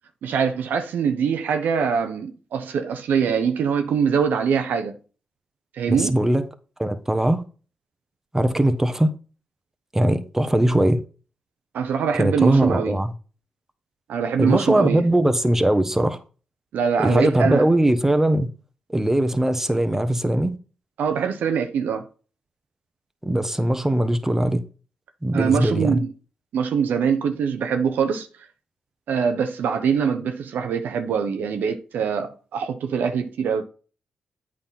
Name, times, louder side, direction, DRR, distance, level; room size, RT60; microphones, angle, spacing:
voice 1, 0.2-5.0 5.8-6.2 11.7-13.0 14.1-15.0 16.7-17.7 21.0-22.1 25.3-26.1 26.5-28.3 29.1-33.7, right 6 dB, 75° right, 0.8 m, -23 dB
voice 2, 5.9-6.4 6.8-7.4 8.3-9.1 9.9-11.0 12.2-13.1 14.4-16.2 17.0-18.5 18.9-20.6 23.2-24.6 25.2-26.0, right 1 dB, 10° right, 1.1 m, -20 dB
8.5 x 3.7 x 5.8 m
supercardioid pair, 45°, 3 cm